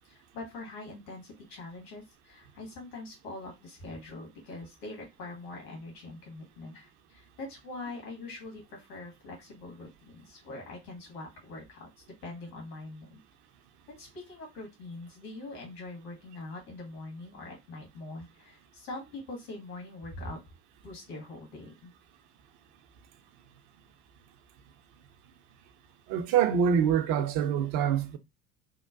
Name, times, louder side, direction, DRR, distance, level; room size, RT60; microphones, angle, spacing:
voice 1, 0.1-11.9 12.2-13.2 13.9-20.4 20.8-21.9, left 2 dB, 65° left, 1.4 m, -43 dB
voice 2, 26.1-28.2, right 8 dB, 40° right, 0.5 m, -25 dB
2.9 x 2.2 x 2.4 m
figure-of-eight pair, 65°, 47 cm